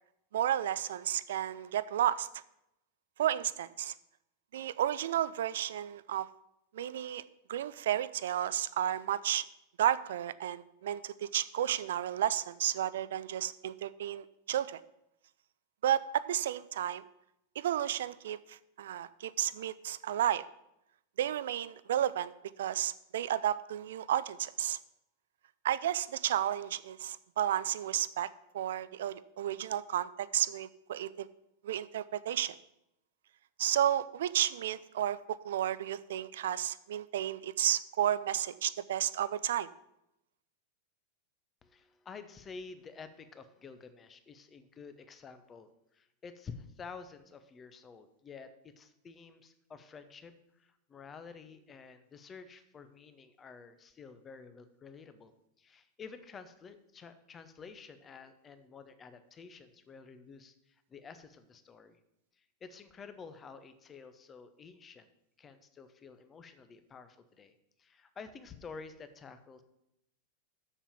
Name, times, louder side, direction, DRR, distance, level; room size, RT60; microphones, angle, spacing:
voice 1, 0.3-2.3 3.2-3.9 4.5-6.3 6.7-7.2 7.5-9.4 9.8-14.8 15.8-17.0 17.6-20.4 21.2-22.3 22.6-24.8 25.6-28.3 28.5-31.3 31.6-32.6 33.6-39.7, right 11 dB, 60° right, 17 dB, 0.4 m, -32 dB
voice 2, 41.6-55.3 55.6-62.0 62.3-65.1 65.4-69.6, left 5 dB, 20° left, 10 dB, 0.9 m, -50 dB
7.3 x 6.9 x 7.2 m, 0.82 s
figure-of-eight pair, 90°, 0 cm